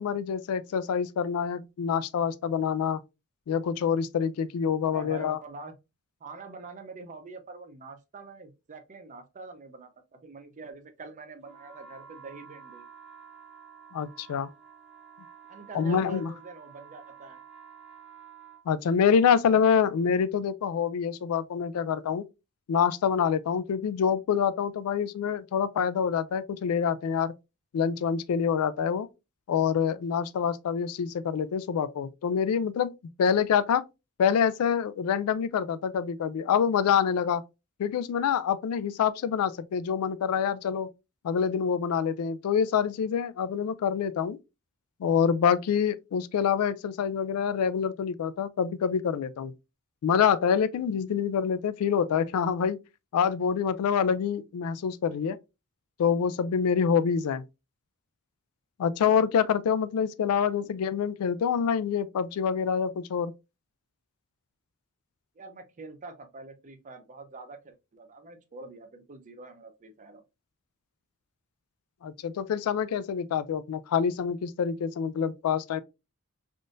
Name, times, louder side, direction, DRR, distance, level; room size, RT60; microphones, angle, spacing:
voice 1, 0.0-3.0 3.5-5.4 13.9-14.5 15.7-16.3 18.7-22.2 22.7-27.3 27.7-29.1 29.5-32.9 33.2-33.8 34.2-37.4 37.8-40.9 41.2-44.4 45.0-49.5 50.0-52.8 53.1-55.4 56.0-57.4 58.8-63.3 72.0-75.8, left 7 dB, 80° left, 0.3 m, -26 dB
voice 2, 4.8-5.7 6.2-12.9 15.5-17.4 60.6-60.7 65.4-70.2, right 3 dB, 35° right, 0.5 m, -45 dB
sound 1, 11.4-18.6, right 7 dB, 5° right, 0.7 m, -50 dB
3.6 x 2.6 x 2.4 m
head